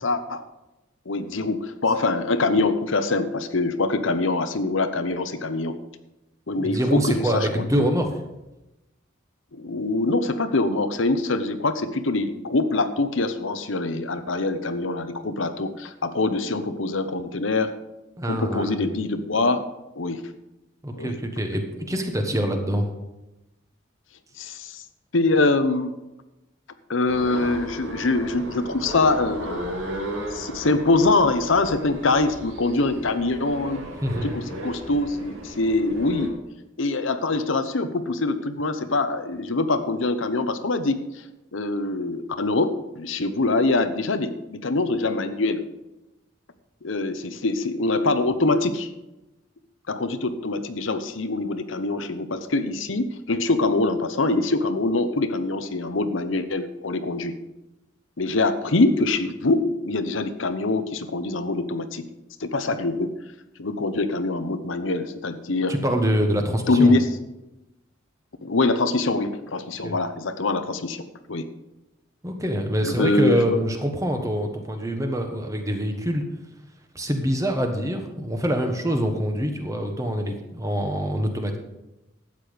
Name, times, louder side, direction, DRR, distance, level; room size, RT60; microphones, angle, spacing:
voice 1, 0.0-0.4 1.1-5.8 6.5-7.8 9.5-17.7 18.3-19.6 20.0-20.3 21.0-21.2 24.4-24.8 25.1-25.9 26.9-29.7 30.3-33.8 34.2-36.3 36.8-41.0 41.5-45.7 46.8-48.9 49.9-57.4 58.2-62.0 62.4-63.1 63.6-65.7 66.7-67.0 68.4-71.5 72.8-73.5, left 2 dB, 80° left, 9 dB, 0.9 m, -24 dB
voice 2, 6.6-8.1 18.2-18.8 20.8-22.9 34.0-34.3 65.7-67.0 69.8-70.0 72.2-76.2 76.9-81.6, equal, 15° right, 4 dB, 1.3 m, -25 dB
sound 1, 27.1-36.3, right 1 dB, 85° right, 2.3 m, -35 dB
12.5 x 8.5 x 5.2 m, 0.97 s
head